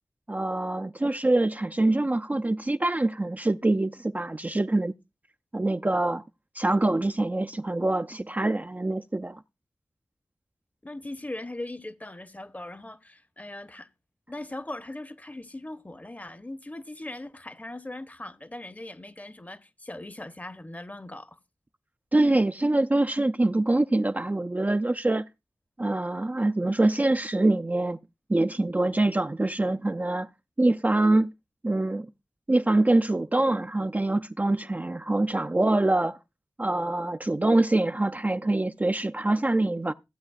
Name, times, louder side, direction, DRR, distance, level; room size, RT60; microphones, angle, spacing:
voice 1, 0.3-4.9 5.5-6.2 6.5-9.4 22.1-25.2 25.8-28.0 28.3-30.3 30.6-31.3 31.6-32.1 32.5-36.2 36.6-39.9, right 2 dB, 25° right, 0.4 m, -24 dB
voice 2, 10.8-13.9 14.3-21.4, left 1 dB, 25° left, 0.8 m, -39 dB
15.0 x 8.3 x 2.3 m
wide cardioid pair, 55°, 7 cm